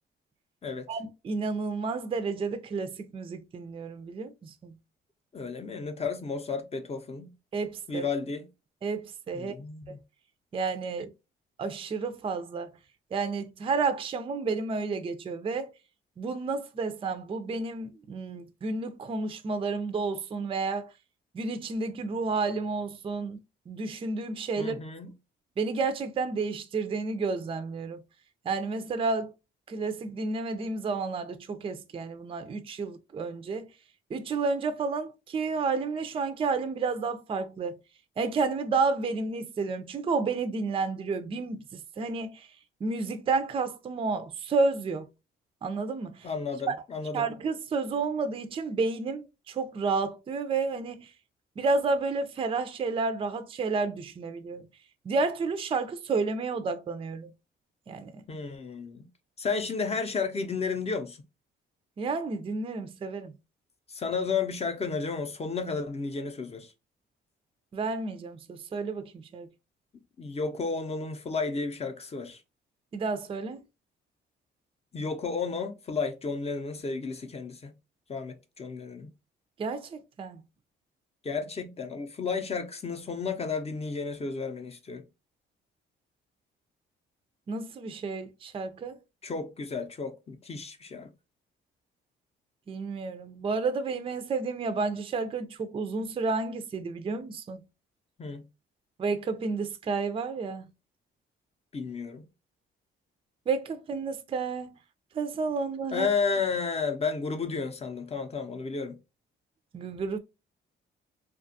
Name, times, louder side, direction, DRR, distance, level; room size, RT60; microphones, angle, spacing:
voice 1, 0.9-4.7 7.5-8.0 8.8-9.6 9.9-10.0 10.5-11.1 11.6-12.7 13.1-15.7 16.2-20.9 21.3-23.4 23.7-24.7 25.6-28.0 28.5-29.3 29.7-33.7 34.1-37.8 38.2-42.5 42.8-45.1 45.6-46.3 46.7-46.8 47.1-51.1 51.6-54.7 55.1-57.3 57.9-58.2 62.0-63.3 67.7-69.5 72.9-73.6 79.6-80.4 87.5-89.0 92.7-97.6 99.0-100.7 103.5-104.7 105.1-106.1 109.7-110.2, right 4 dB, 30° right, 0.4 m, -31 dB
voice 2, 5.3-7.3 7.9-8.5 9.3-10.0 24.6-25.1 46.2-47.3 58.3-59.1 59.4-61.2 63.9-66.7 70.2-72.4 74.9-77.7 78.1-79.1 81.2-85.0 89.2-91.1 98.2-98.5 101.7-102.2 105.9-109.0, left 5 dB, 30° left, 0.6 m, -32 dB
2.5 x 2.3 x 2.6 m
cardioid pair, 90°, 20 cm